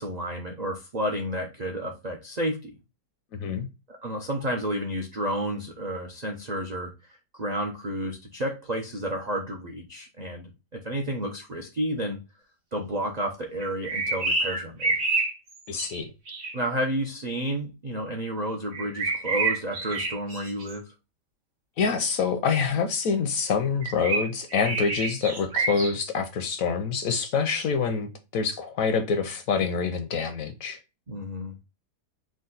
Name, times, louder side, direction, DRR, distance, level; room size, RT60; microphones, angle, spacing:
voice 1, 0.0-2.7 3.9-6.9 7.3-12.2 12.7-15.0 16.5-20.9 31.1-31.5, right 1 dB, 65° right, 0.4 m, -31 dB
voice 2, 3.3-3.7 15.7-16.1 21.8-30.8, left 5 dB, 65° left, 0.9 m, -26 dB
sound 1, 13.6-16.6 18.7-20.7 23.8-25.9, right 3 dB, 85° right, 2.4 m, -28 dB
4.9 x 2.3 x 3.8 m
omnidirectional pair, 1.8 m